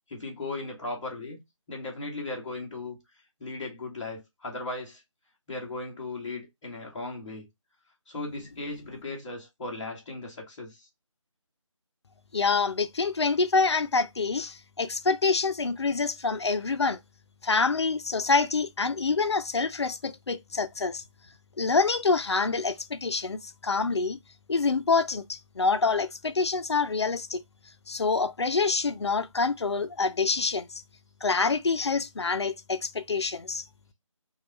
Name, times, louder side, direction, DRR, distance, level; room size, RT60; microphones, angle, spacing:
voice 1, 0.1-1.4 1.7-3.0 3.4-5.0 5.5-7.5 8.1-10.9, left 2 dB, 10° left, 0.6 m, -37 dB
voice 2, 12.3-17.0 17.4-21.0 21.6-24.2 24.5-27.4 27.9-30.8 31.2-33.6, left 4 dB, 55° left, 0.4 m, -26 dB
3.1 x 2.3 x 3.0 m
figure-of-eight pair, 160°, 17 cm